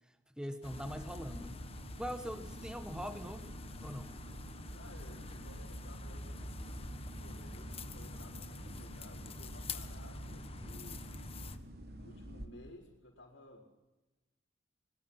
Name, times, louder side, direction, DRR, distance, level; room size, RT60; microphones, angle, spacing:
voice 1, 0.4-1.6 2.0-4.1, equal, 5° right, 8 dB, 1.2 m, -42 dB
sound 1, 0.6-11.6, left 3 dB, 30° left, 1.4 m, -48 dB
sound 2, 0.7-12.5, right 1 dB, 55° right, 2.8 m, -48 dB
voice 2, 4.7-11.3 11.9-13.7, left 1 dB, 75° left, -5 dB, 4.8 m, -56 dB
Bass guitar, 6.1-12.4, equal, 35° right, 5.3 m, -59 dB
23.0 x 23.0 x 5.8 m, 1.0 s
head